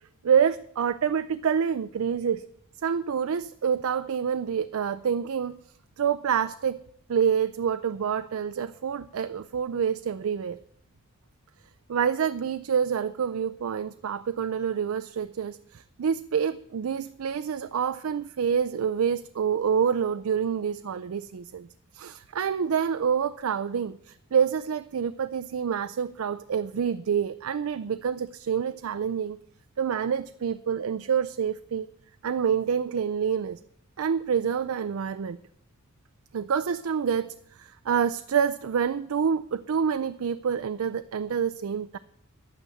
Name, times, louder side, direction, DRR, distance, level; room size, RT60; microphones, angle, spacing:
voice 1, 0.2-2.5 2.8-5.6 6.0-6.8 7.1-10.6 11.9-21.7 21.9-29.4 29.8-31.9 32.2-33.6 34.0-35.4 36.3-37.3 37.5-42.0, right 7 dB, 90° right, 11 dB, 0.4 m, -27 dB
10.5 x 9.1 x 7.6 m, 0.71 s
head